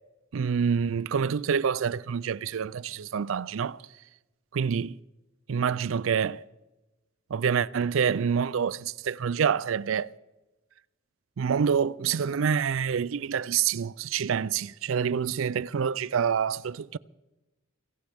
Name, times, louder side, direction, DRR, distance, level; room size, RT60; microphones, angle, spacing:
voice 1, 0.3-3.8 4.5-5.0 5.5-6.4 7.3-10.1 11.4-17.0, right 7 dB, 75° right, 0.4 m, -27 dB
24.5 x 16.0 x 3.5 m
head